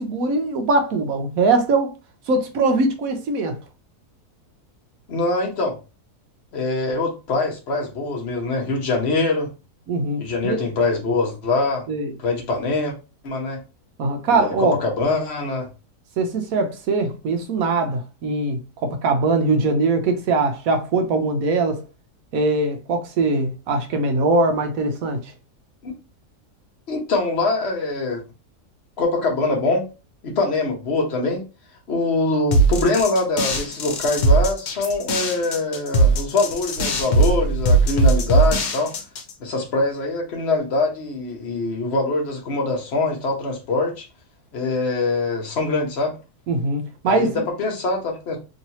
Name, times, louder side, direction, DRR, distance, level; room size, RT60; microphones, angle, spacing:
voice 1, 0.0-1.9 2.3-3.6 9.9-10.6 11.9-12.1 14.0-14.8 16.2-21.8 22.3-25.3 46.5-47.4, right 3 dB, 65° right, 1.0 m, -21 dB
voice 2, 5.1-5.8 6.5-9.5 10.2-11.8 12.2-12.9 13.2-13.6 14.3-15.7 25.8-25.9 26.9-28.2 29.0-29.8 30.2-31.4 31.9-38.9 39.4-44.0 44.5-46.1 47.0-47.3 47.6-48.4, left 3 dB, 45° left, 1.1 m, -23 dB
sound 1, 32.5-39.3, right 2 dB, 70° left, 1.3 m, -19 dB
3.1 x 2.9 x 2.8 m
omnidirectional pair, 1.7 m